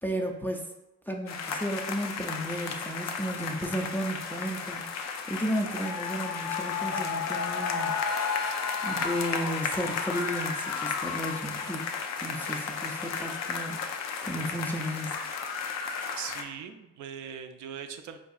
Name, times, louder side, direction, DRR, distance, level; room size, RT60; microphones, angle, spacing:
voice 1, 0.0-0.7 1.1-11.9 12.2-13.8 14.2-15.3, equal, 5° left, 1 dB, 0.3 m, -34 dB
sound 1, 1.3-16.4, left 5 dB, 60° left, 0.5 m, -33 dB
voice 2, 16.2-18.2, right 8 dB, 70° right, 7 dB, 0.4 m, -40 dB
4.4 x 2.6 x 2.4 m, 0.95 s
cardioid pair, 90°, 30 cm